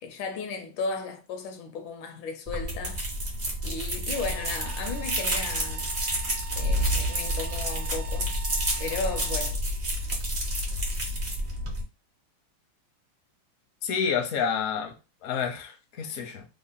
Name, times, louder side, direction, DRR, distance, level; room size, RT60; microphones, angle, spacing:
voice 1, 0.0-3.1 3.6-5.9 6.5-8.4 8.8-9.6, left 4 dB, 75° left, 1.3 m, -35 dB
sound 1, 2.5-11.8, equal, 40° right, 0.6 m, -29 dB
sound 2, 4.1-9.5, right 6 dB, 70° right, 1.0 m, -44 dB
voice 2, 13.8-15.0 15.2-16.5, left 7 dB, 60° left, 0.8 m, -29 dB
3.7 x 2.0 x 3.9 m
omnidirectional pair, 2.2 m